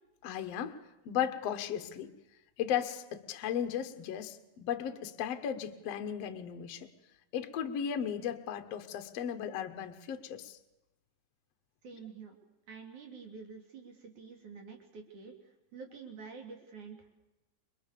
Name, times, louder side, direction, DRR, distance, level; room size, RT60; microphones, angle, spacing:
voice 1, 0.2-0.8 1.0-2.1 2.6-6.9 7.3-10.6, left 9 dB, 65° left, 7 dB, 1.5 m, -35 dB
voice 2, 11.8-12.4 12.7-17.2, right 5 dB, 45° right, 2 dB, 4.4 m, -48 dB
29.5 x 24.0 x 6.9 m, 0.98 s
omnidirectional pair, 5.0 m